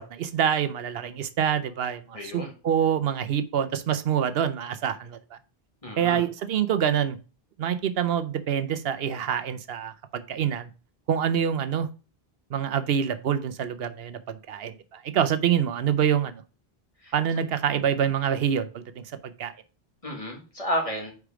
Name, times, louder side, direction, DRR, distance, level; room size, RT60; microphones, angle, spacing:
voice 1, 0.0-5.4 6.0-7.2 7.6-10.7 11.1-11.9 12.5-16.3 17.1-19.5, right 9 dB, 75° right, 11 dB, 0.8 m, -26 dB
voice 2, 2.1-2.5 5.8-6.2 17.0-17.1 20.0-21.1, equal, 35° left, 0 dB, 2.0 m, -31 dB
4.9 x 4.7 x 4.8 m, 0.33 s
omnidirectional pair, 1.0 m